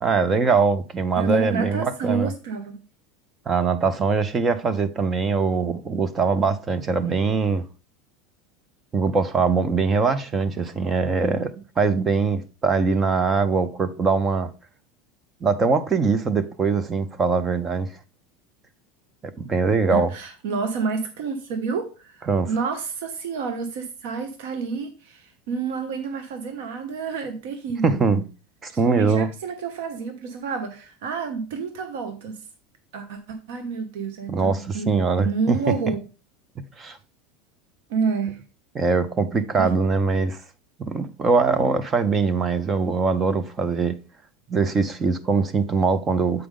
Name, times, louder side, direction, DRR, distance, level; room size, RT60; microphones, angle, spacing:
voice 1, 0.0-2.3 3.5-7.6 8.9-14.5 15.4-17.9 19.4-20.1 22.3-22.5 27.8-28.3 28.6-29.3 34.3-35.9 36.8-37.0 38.7-40.4 40.8-44.0 44.5-46.5, right 4 dB, 15° right, 0.5 m, -22 dB
voice 2, 1.2-2.8 19.9-28.0 28.7-32.4 32.9-36.0 37.9-38.4 39.6-39.7, right 5 dB, 65° right, 1.0 m, -29 dB
7.8 x 4.9 x 3.6 m
supercardioid pair, 175°, 0 cm